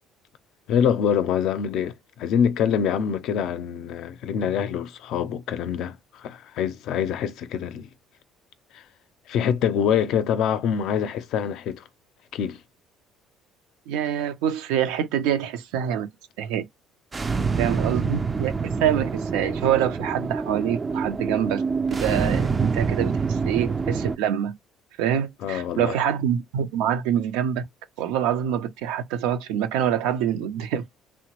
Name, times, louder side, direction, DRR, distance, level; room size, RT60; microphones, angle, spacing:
voice 1, 0.7-7.9 8.7-8.8 9.3-11.8 12.3-12.6 25.4-26.0, left 8 dB, 70° left, 0.4 m, -25 dB
voice 2, 13.9-16.1 16.4-16.6 17.6-21.6 21.9-24.5 25.0-27.6 28.0-30.9, right 9 dB, 85° right, 0.5 m, -25 dB
sound 1, 17.1-24.2, right 5 dB, 25° right, 0.3 m, -26 dB
2.9 x 2.1 x 2.9 m
supercardioid pair, 90°, 0 cm